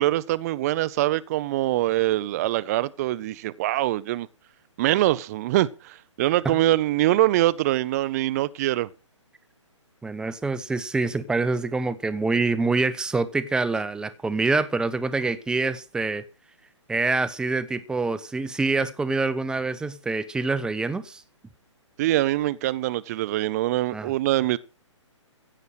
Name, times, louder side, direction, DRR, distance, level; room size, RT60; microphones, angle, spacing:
voice 1, 0.0-4.3 4.8-8.9 22.0-24.6, right 15 dB, 30° right, 0.7 m, -23 dB
voice 2, 10.0-16.2 16.9-21.2 23.9-24.1, right 3 dB, 5° right, 0.8 m, -26 dB
16.0 x 8.0 x 6.3 m
figure-of-eight pair, 135°, 16 cm